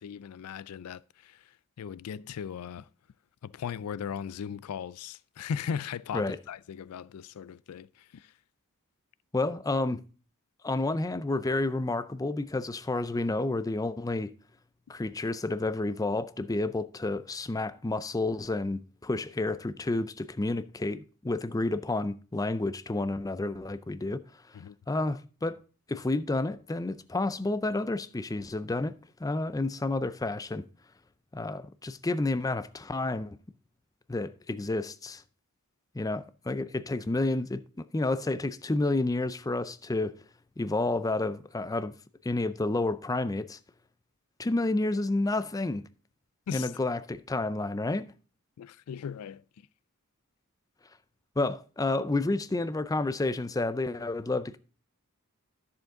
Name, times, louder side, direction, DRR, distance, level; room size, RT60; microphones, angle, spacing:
voice 1, 0.0-1.4 1.8-2.9 3.4-7.9 8.1-8.3 24.5-24.8 46.5-46.7 48.6-49.4, left 7 dB, 90° left, 0.4 m, -37 dB
voice 2, 9.3-10.0 10.6-14.3 14.9-24.2 24.9-25.6 25.9-28.9 29.2-30.6 31.3-33.4 34.1-35.2 35.9-40.2 40.6-41.9 42.2-43.6 44.4-45.8 46.5-48.1 51.4-54.6, left 2 dB, 15° left, 0.4 m, -30 dB
10.5 x 7.1 x 3.7 m
head